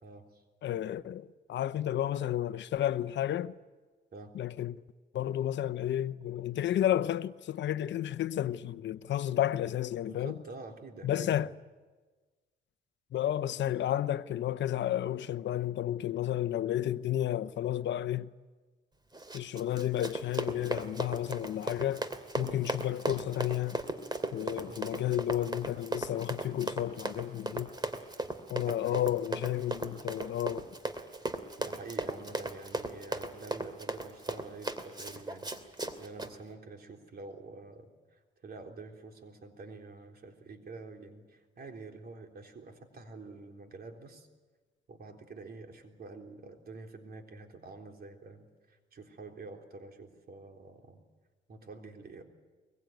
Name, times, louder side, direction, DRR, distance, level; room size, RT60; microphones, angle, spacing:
voice 1, 0.0-0.4 4.1-4.3 10.1-11.5 22.4-22.5 24.7-24.8 28.5-29.1 31.6-44.3 44.9-51.0 51.5-52.2, right 3 dB, 50° right, 3.7 m, -48 dB
voice 2, 0.6-3.5 4.3-4.8 5.1-10.4 11.0-11.5 13.1-18.3 19.3-22.1 22.3-23.8 24.3-27.7 28.5-30.7, left 12 dB, 65° left, 0.8 m, -32 dB
Run, 19.1-36.3, right 2 dB, 20° right, 2.7 m, -37 dB
23.5 x 22.5 x 9.2 m
cardioid pair, 90°, 20 cm